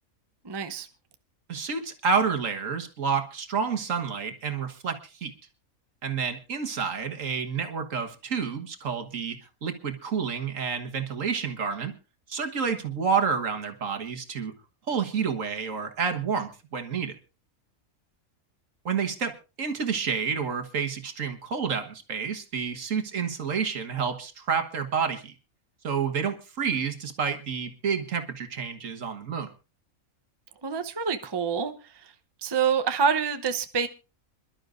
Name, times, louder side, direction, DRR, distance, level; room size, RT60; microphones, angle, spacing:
voice 1, 0.4-0.9 30.6-31.7 32.0-32.1 32.4-33.9, right 6 dB, 25° right, 0.7 m, -26 dB
voice 2, 1.5-5.3 6.0-11.9 12.3-14.5 14.9-17.2 18.9-25.3 25.8-29.5, right 6 dB, 65° right, 1.8 m, -29 dB
26.5 x 12.0 x 2.6 m
omnidirectional pair, 1.5 m